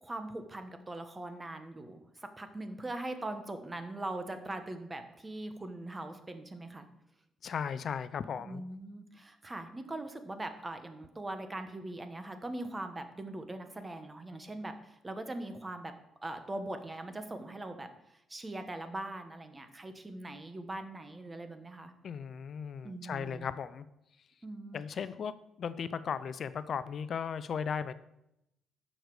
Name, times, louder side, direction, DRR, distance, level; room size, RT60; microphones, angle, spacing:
voice 1, 0.0-6.9 8.3-15.9 16.2-21.9 22.8-23.5 24.4-24.8, right 2 dB, 20° right, 8 dB, 1.2 m, -41 dB
voice 2, 7.4-8.6 22.0-23.9 24.7-25.3 25.6-27.9, left 7 dB, 55° left, 14 dB, 0.5 m, -36 dB
11.5 x 6.6 x 4.8 m, 0.84 s
cardioid pair, 90°, 0 cm